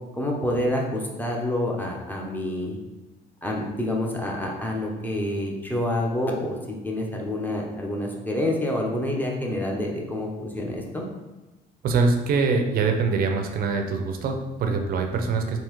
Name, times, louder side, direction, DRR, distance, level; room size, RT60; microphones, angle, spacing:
voice 1, 0.2-2.8 3.4-6.6 6.8-11.0, left 1 dB, 10° left, -1 dB, 0.6 m, -27 dB
voice 2, 11.8-15.6, right 4 dB, 60° right, 5 dB, 0.5 m, -24 dB
3.6 x 2.7 x 3.0 m, 1.1 s
cardioid pair, 110°, 17 cm